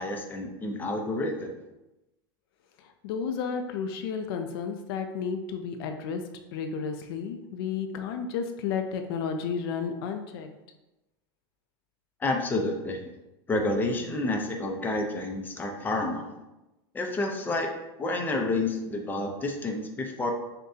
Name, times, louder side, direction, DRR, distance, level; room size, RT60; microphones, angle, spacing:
voice 1, 0.0-1.5 12.2-13.0 13.5-16.3 16.9-17.7 18.0-20.3, left 2 dB, 15° left, 2 dB, 0.6 m, -29 dB
voice 2, 2.8-6.2 6.5-10.5, left 6 dB, 70° left, 6 dB, 0.5 m, -32 dB
6.4 x 2.2 x 2.7 m, 0.99 s
supercardioid pair, 125°, 13 cm